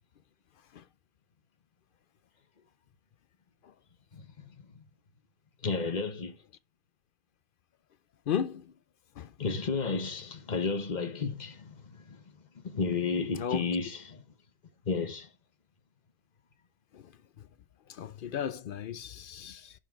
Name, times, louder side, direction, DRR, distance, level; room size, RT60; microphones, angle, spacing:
voice 1, 4.1-4.5 5.6-6.3 9.4-12.2 12.6-14.2 14.9-15.3, left 4 dB, 45° left, 1.1 m, -32 dB
voice 2, 8.3-8.7 9.2-9.3 13.3-13.7 16.9-17.1 17.9-19.7, left 8 dB, 60° left, 0.7 m, -35 dB
10.5 x 4.6 x 4.4 m
omnidirectional pair, 1.1 m